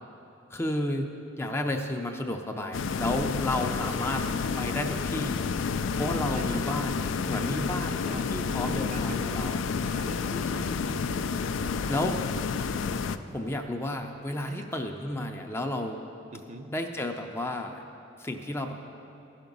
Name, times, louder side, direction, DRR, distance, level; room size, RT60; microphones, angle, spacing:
voice 1, 0.5-1.1 1.4-4.2 4.6-5.4 5.9-7.0 7.3-9.6 10.3-11.1 11.9-12.2 13.3-16.1 16.7-17.8 18.2-18.8, left 1 dB, 15° left, 4 dB, 0.5 m, -32 dB
sound 1, 2.7-13.2, left 5 dB, 75° left, 0.4 m, -30 dB
voice 2, 3.5-4.3 6.3-6.6 8.1-8.3 8.6-10.4 13.2-13.6 14.5-14.7 16.3-16.7, right 2 dB, 35° right, 5 dB, 0.5 m, -43 dB
15.0 x 5.9 x 5.3 m, 2.8 s
head